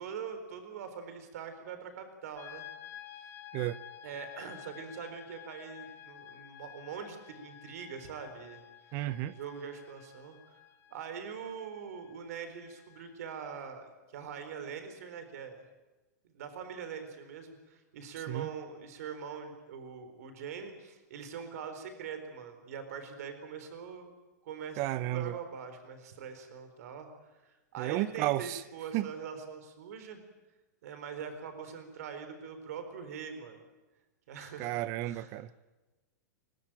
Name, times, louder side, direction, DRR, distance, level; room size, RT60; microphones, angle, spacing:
voice 1, 0.0-2.7 4.0-8.6 9.3-10.6 10.9-15.6 16.3-24.1 24.4-30.2 30.8-33.6 34.3-34.7 35.0-35.3, right 6 dB, 60° right, 4.1 m, -43 dB
sound 1, 2.4-13.2, left 11 dB, 20° left, 4.4 m, -51 dB
voice 2, 8.9-9.4 18.3-18.5 24.8-25.4 27.8-28.6 28.9-29.1 34.6-35.6, right 15 dB, 35° right, 0.7 m, -32 dB
25.0 x 19.5 x 9.0 m
supercardioid pair, 160°, 9 cm